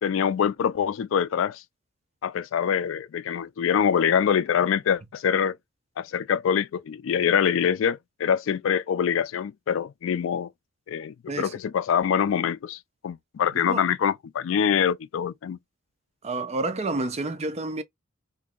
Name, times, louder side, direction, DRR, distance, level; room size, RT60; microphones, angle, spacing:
voice 1, 0.0-1.6 2.2-5.6 6.0-10.5 10.9-15.6, left 8 dB, 70° left, 0.3 m, -24 dB
voice 2, 16.2-17.8, right 2 dB, 35° right, 0.5 m, -29 dB
2.9 x 2.6 x 3.7 m
head